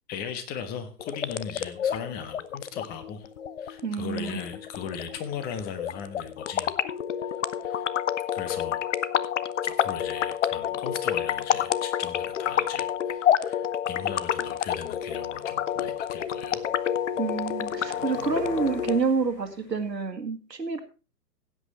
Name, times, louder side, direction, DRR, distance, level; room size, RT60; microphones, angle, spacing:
voice 1, 0.1-3.3 3.6-6.7 7.6-7.9 8.3-8.8 9.6-16.6, left 7 dB, 20° left, 10 dB, 1.3 m, -38 dB
sound 1, 1.0-19.0, left 9 dB, 45° left, 0.7 m, -29 dB
voice 2, 3.8-4.4 17.2-20.8, right 5 dB, 85° right, 7 dB, 2.2 m, -28 dB
sound 2, 12.7-20.1, left 1 dB, 80° left, 4.9 m, -49 dB
16.0 x 8.3 x 4.1 m, 0.33 s
figure-of-eight pair, 125°, 49 cm